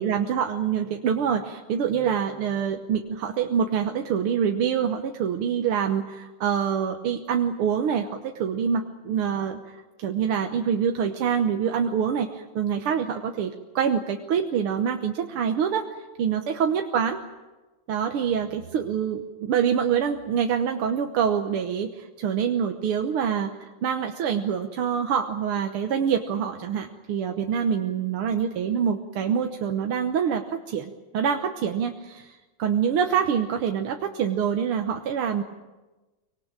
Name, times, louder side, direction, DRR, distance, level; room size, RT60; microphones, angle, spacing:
voice 1, 0.0-15.9 16.2-17.2 17.9-35.4, right 7 dB, 80° right, 4 dB, 2.0 m, -26 dB
25.0 x 19.5 x 9.0 m, 1.2 s
omnidirectional pair, 2.4 m